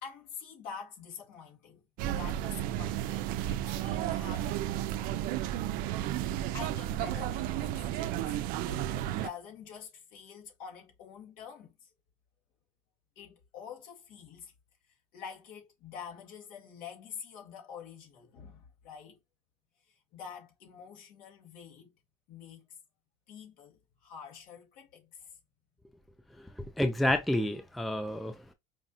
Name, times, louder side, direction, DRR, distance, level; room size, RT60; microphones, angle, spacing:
voice 1, 0.0-1.8 2.1-4.6 6.5-8.4 8.6-11.9 13.2-14.5 15.1-19.2 20.1-21.9 22.3-22.7 23.3-25.4, left 7 dB, 60° left, 1.9 m, -47 dB
sound 1, 2.0-9.3, right 12 dB, 70° right, 0.4 m, -33 dB
voice 2, 26.4-28.5, left 1 dB, ahead, 0.4 m, -30 dB
4.9 x 2.7 x 2.5 m
cardioid pair, 120°, 15 cm